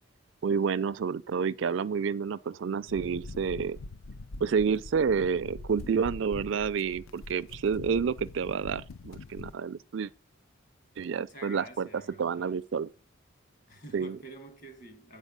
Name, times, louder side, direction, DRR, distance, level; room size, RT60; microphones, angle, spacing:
voice 1, 0.4-3.8 4.4-10.1 11.0-12.9 13.9-14.2, right 6 dB, 60° right, 0.4 m, -29 dB
sound 1, 2.9-9.5, left 2 dB, 70° left, 0.5 m, -44 dB
voice 2, 11.1-12.6 13.7-15.2, right 1 dB, 40° left, 1.8 m, -48 dB
8.1 x 5.3 x 6.7 m
head